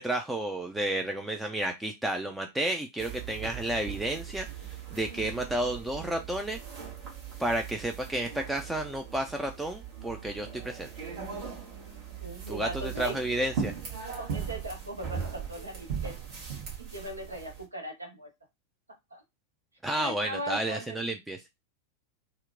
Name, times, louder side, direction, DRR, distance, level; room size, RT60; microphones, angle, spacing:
voice 1, 0.0-4.5 4.9-6.6 7.4-10.9 12.5-13.7 19.8-21.4, right 1 dB, 5° right, 4 dB, 0.3 m, -31 dB
sound 1, 3.0-17.6, right 7 dB, 45° right, 1.1 m, -39 dB
voice 2, 12.2-13.2 14.0-16.2 16.8-18.3 19.1-19.2 19.9-21.0, right 1 dB, 80° right, 3 dB, 0.7 m, -39 dB
2.8 x 2.1 x 2.5 m, 0.21 s
figure-of-eight pair, 90°, 0 cm